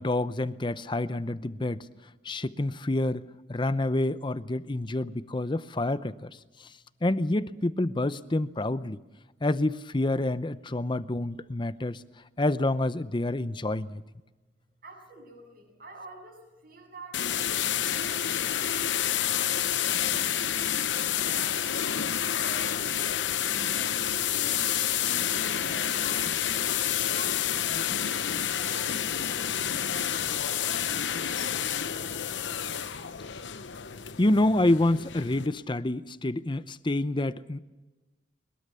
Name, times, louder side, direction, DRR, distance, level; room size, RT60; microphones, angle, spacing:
voice 1, 0.0-1.9 2.2-6.3 7.0-9.0 9.4-12.0 12.4-14.0 27.9-28.0 34.2-37.6, left 1 dB, 25° left, 14 dB, 0.7 m, -28 dB
voice 2, 14.8-21.7 22.4-24.7 25.2-26.6 27.0-30.6 31.1-32.5, right 2 dB, 55° right, 2 dB, 7.7 m, -49 dB
sound 1, 17.1-35.5, left 10 dB, 85° left, 0.8 m, -29 dB
22.0 x 21.5 x 6.9 m, 1.1 s
head